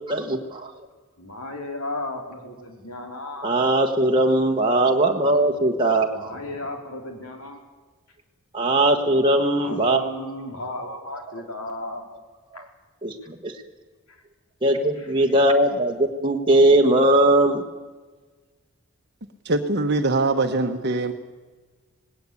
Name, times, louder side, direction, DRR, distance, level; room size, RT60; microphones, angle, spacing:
voice 1, 0.1-0.7 3.4-6.3 8.5-10.0 13.0-13.5 14.6-17.6, right 1 dB, 20° right, 1 dB, 1.4 m, -20 dB
voice 2, 1.2-3.5 6.1-7.6 9.6-12.1 12.5-12.7 14.1-14.2 15.0-15.1, left 2 dB, 85° left, 3 dB, 4.1 m, -35 dB
voice 3, 19.4-21.1, right 2 dB, 50° right, 5 dB, 1.1 m, -22 dB
19.0 x 18.0 x 8.5 m, 1.3 s
head